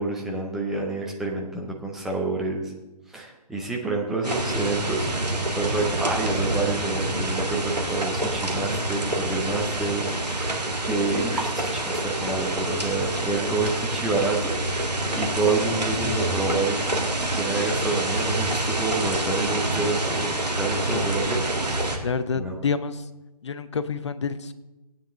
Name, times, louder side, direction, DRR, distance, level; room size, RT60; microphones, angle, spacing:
voice 1, 0.0-2.7 3.1-5.1 5.5-14.5 15.1-20.3 20.6-21.4 21.8-22.1 22.3-22.5, right 3 dB, ahead, -1 dB, 0.6 m, -28 dB
sound 1, 4.2-22.0, right 2 dB, 80° right, 1.7 m, -27 dB
voice 2, 16.0-16.3 20.8-21.1 22.0-23.1 23.4-24.5, left 5 dB, 45° left, 12 dB, 0.7 m, -29 dB
16.0 x 9.3 x 3.6 m, 1.1 s
figure-of-eight pair, 145°, 21 cm